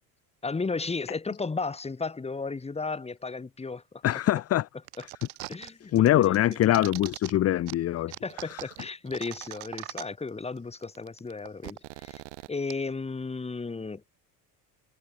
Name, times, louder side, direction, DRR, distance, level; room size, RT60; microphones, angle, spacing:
voice 1, 0.4-4.0 5.0-5.1 5.5-6.7 8.2-12.2 12.5-14.0, left 4 dB, 15° left, 1.2 m, -34 dB
voice 2, 4.0-4.7 5.9-8.1 8.5-8.6, left 13 dB, 35° left, 0.5 m, -23 dB
sound 1, 4.9-5.7 6.0-7.3 7.7-7.8 8.1-10.3 10.6-10.7 10.8-12.7, right 28 dB, 80° right, 4.9 m, -41 dB
supercardioid pair, 85°, 46 cm